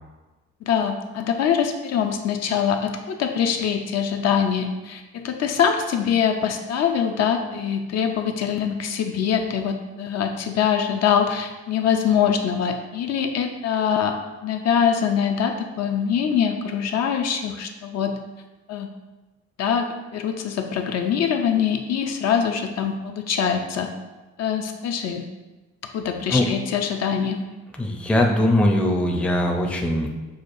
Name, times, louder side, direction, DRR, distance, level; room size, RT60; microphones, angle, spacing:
voice 1, 0.6-14.2 14.4-18.2 18.7-18.9 19.6-23.9 24.4-25.3 25.9-27.4, left 7 dB, 60° left, 4 dB, 0.5 m, -23 dB
voice 2, 27.8-30.1, left 1 dB, 5° left, 1 dB, 0.5 m, -20 dB
6.2 x 2.3 x 2.6 m, 1.2 s
cardioid pair, 90°, 30 cm